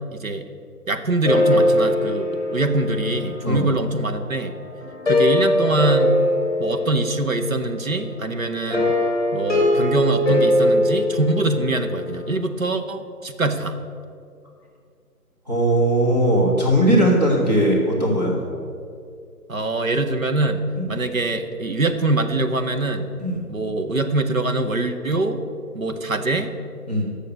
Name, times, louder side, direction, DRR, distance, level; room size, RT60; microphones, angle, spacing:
voice 1, 0.1-0.4 0.9-4.5 5.1-6.2 6.6-8.9 9.3-13.8 19.5-23.1 23.5-25.4 25.7-26.5, right 2 dB, 55° right, 8 dB, 0.8 m, -23 dB
sound 1, 1.3-4.3 4.8-7.5 8.7-12.0, left 1 dB, ahead, 2.1 m, -21 dB
voice 2, 15.5-18.4 20.8-20.9 23.2-23.4 26.9-27.0, right 1 dB, 25° right, -4 dB, 1.5 m, -19 dB
7.7 x 6.6 x 7.8 m, 2.4 s
figure-of-eight pair, 180°, 48 cm